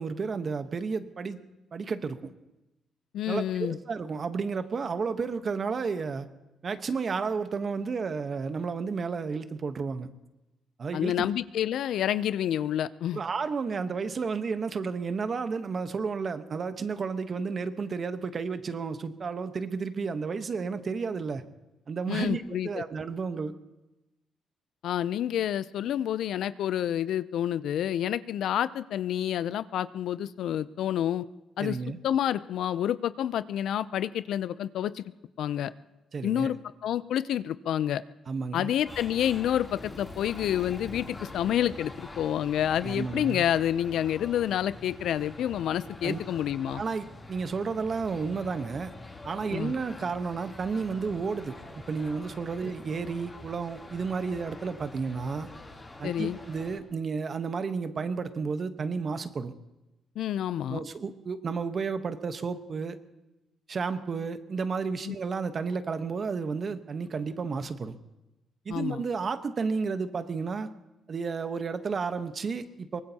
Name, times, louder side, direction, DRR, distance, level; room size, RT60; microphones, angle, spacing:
voice 1, 0.0-1.4 1.7-2.3 3.3-6.3 6.6-10.1 10.8-11.3 13.1-21.4 21.9-23.5 31.6-32.0 36.1-36.5 38.3-38.7 42.8-43.4 46.0-46.2 46.7-48.9 49.2-55.5 56.0-59.5 60.7-63.0 63.7-68.0 68.6-70.7 71.1-73.0, right 5 dB, 45° right, 10 dB, 1.0 m, -32 dB
voice 2, 3.1-3.8 10.9-13.2 22.1-22.8 24.8-31.3 31.6-31.8 32.0-35.0 35.4-35.7 36.2-36.6 36.8-38.0 38.5-46.8 49.5-49.7 56.0-56.4 60.2-60.8 65.1-65.2 68.7-69.0, left 10 dB, 75° left, 16 dB, 0.5 m, -28 dB
sound 1, 38.8-56.8, left 2 dB, 20° left, 3.0 m, -45 dB
23.5 x 19.0 x 2.9 m, 1.0 s
cardioid pair, 90°, 0 cm